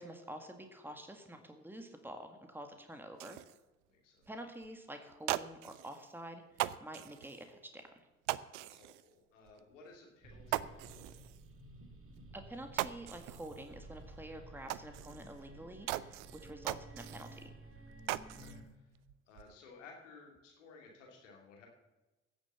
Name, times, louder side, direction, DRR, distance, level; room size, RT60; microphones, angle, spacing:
voice 1, 0.0-3.4 4.3-6.4 6.8-7.8 12.3-17.4, right 1 dB, 5° right, 6 dB, 1.9 m, -48 dB
sound 1, 3.1-3.6 4.2-4.3 4.6-4.7 5.1-6.1 6.5-7.4 8.3-9.1 9.5-9.6 9.9-10.0 10.5-11.4 12.2-12.3 12.5-13.6 14.0-14.1 14.7-15.4 15.9-17.4 17.7-18.6 19.0-19.5, right 16 dB, 75° right, 0.5 m, -40 dB
voice 2, 3.9-4.3 8.5-11.2 18.2-18.6 19.3-21.7, left 4 dB, 85° left, 0 dB, 2.7 m, -57 dB
sound 2, 10.2-18.6, right 2 dB, 35° right, 2.5 m, -53 dB
16.0 x 7.0 x 6.9 m, 1.1 s
figure-of-eight pair, 45°, 36 cm